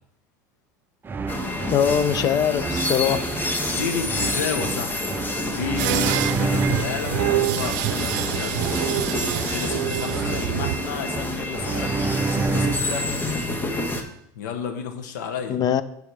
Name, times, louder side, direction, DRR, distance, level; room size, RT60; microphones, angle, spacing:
sound 1, 1.0-13.1, right 3 dB, 20° right, 0.6 m, -29 dB
sound 2, 1.3-14.0, left 2 dB, 20° left, 1.3 m, -29 dB
voice 1, 1.6-3.3 15.5-15.8, left 8 dB, 40° left, 14 dB, 0.7 m, -22 dB
voice 2, 3.6-5.1 5.4-8.6 9.5-13.1 14.3-15.6, left 6 dB, 80° left, 6 dB, 1.4 m, -31 dB
sound 3, 5.8-10.8, right 14 dB, 70° right, 0.6 m, -27 dB
10.0 x 4.9 x 4.8 m, 0.75 s
supercardioid pair, 95°, 10 cm